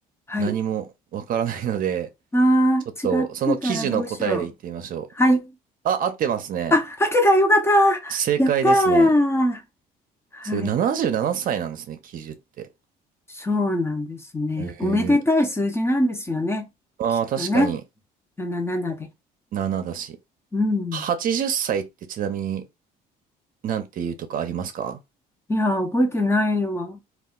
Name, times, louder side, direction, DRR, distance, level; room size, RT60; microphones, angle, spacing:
voice 1, 0.4-0.8 1.1-2.1 3.0-5.1 5.8-6.7 8.1-9.1 10.4-12.7 14.6-15.2 17.0-17.8 19.5-20.2 20.9-22.7 23.6-25.0, right 8 dB, 55° right, 0.6 m, -26 dB
voice 2, 2.3-2.8 3.1-4.5 5.2-5.5 6.7-9.6 10.3-10.7 13.3-16.7 17.4-17.7 18.4-19.1 20.5-21.1 25.5-27.0, left 1 dB, 15° left, 0.6 m, -21 dB
2.4 x 2.2 x 3.7 m
cardioid pair, 110°, 17 cm